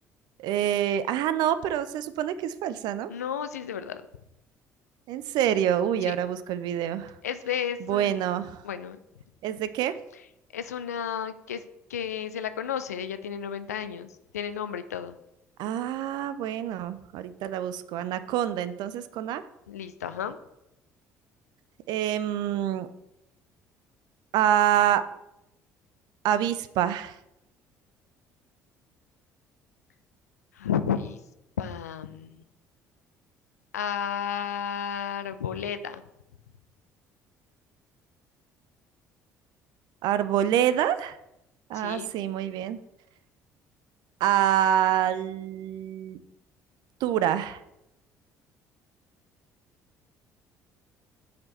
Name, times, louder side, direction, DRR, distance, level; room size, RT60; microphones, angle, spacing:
voice 1, 0.4-3.1 5.1-7.1 7.8-8.6 9.4-9.9 15.6-19.4 21.9-22.9 24.3-25.0 26.2-27.1 40.0-41.2 41.7-42.8 44.2-46.2 47.0-47.6, right 10 dB, 60° right, 14 dB, 0.5 m, -26 dB
voice 2, 3.1-4.0 5.9-6.1 7.2-8.2 8.6-9.0 10.5-11.6 11.9-14.1 14.3-15.2 19.7-20.4 30.6-31.2 31.6-32.4 33.7-36.0 41.7-42.1, left 8 dB, 80° left, 12 dB, 0.4 m, -32 dB
7.5 x 4.3 x 4.3 m, 0.86 s
figure-of-eight pair, 55°, 8 cm